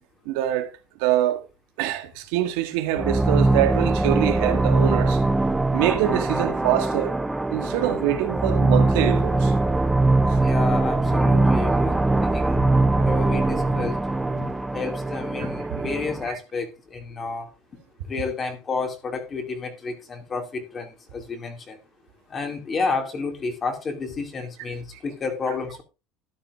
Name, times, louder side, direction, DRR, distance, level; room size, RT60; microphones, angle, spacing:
voice 1, 0.3-0.7 1.0-1.4 1.8-5.2 5.7-7.1 7.5-9.5 16.3-16.4, right 13 dB, 75° right, 1.8 m, -24 dB
sound 1, 2.9-16.3, right 2 dB, 5° right, 0.7 m, -22 dB
voice 2, 10.4-12.7 12.9-14.0 14.4-17.5 18.1-21.8 22.3-25.8, left 4 dB, 25° left, 2.5 m, -31 dB
13.0 x 10.0 x 2.6 m
supercardioid pair, 135°, 0 cm